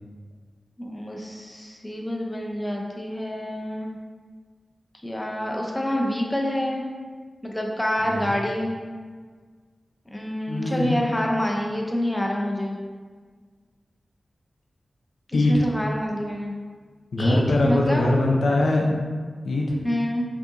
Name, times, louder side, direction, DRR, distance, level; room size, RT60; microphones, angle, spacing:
voice 1, 0.8-4.0 5.0-6.8 7.4-8.7 10.1-12.8 15.3-16.5 17.2-18.1 19.8-20.2, equal, 10° left, -1 dB, 0.5 m, -27 dB
voice 2, 8.0-8.3 10.5-11.0 15.3-15.6 17.1-18.9 19.4-19.8, left 2 dB, 90° left, -1 dB, 0.5 m, -22 dB
4.9 x 2.8 x 2.6 m, 1.5 s
wide cardioid pair, 100°, 0 cm